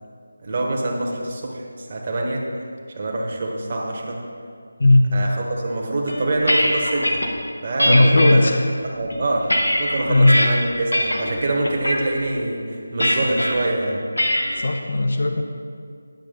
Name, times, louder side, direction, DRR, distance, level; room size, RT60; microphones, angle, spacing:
voice 1, 0.4-2.4 3.0-4.2 5.1-7.2 7.6-8.4 8.8-14.0, right 2 dB, 35° right, -1 dB, 1.2 m, -25 dB
voice 2, 4.8-5.1 7.9-8.6 10.1-10.4 14.6-15.4, left 2 dB, 50° left, 5 dB, 0.7 m, -16 dB
sound 1, 6.1-7.3 7.8-8.3 8.9-10.5 10.9-11.3 11.6-12.0 13.0-13.5 14.2-14.5, equal, 70° left, 1.3 m, -21 dB
10.5 x 6.7 x 3.9 m, 2.2 s
figure-of-eight pair, 160°, 0 cm